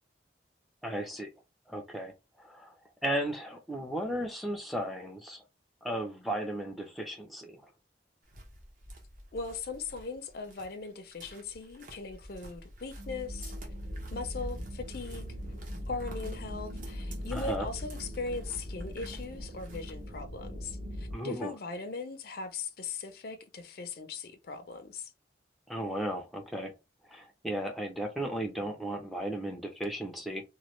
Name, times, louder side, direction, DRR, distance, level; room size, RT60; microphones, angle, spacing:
voice 1, 0.8-1.3 1.7-2.1 2.4-2.7 3.0-5.4 5.8-7.6 17.3-17.7 21.1-21.5 25.7-26.7 27.1-30.4, right 1 dB, ahead, 0.5 m, -35 dB
sound 1, 8.2-20.1, right 1 dB, 45° right, 0.8 m, -51 dB
voice 2, 9.3-13.5 14.1-15.2 15.9-25.1, left 4 dB, 55° left, 0.5 m, -39 dB
sound 2, 12.9-21.1, equal, 65° right, 1.5 m, -40 dB
3.0 x 2.2 x 3.0 m
head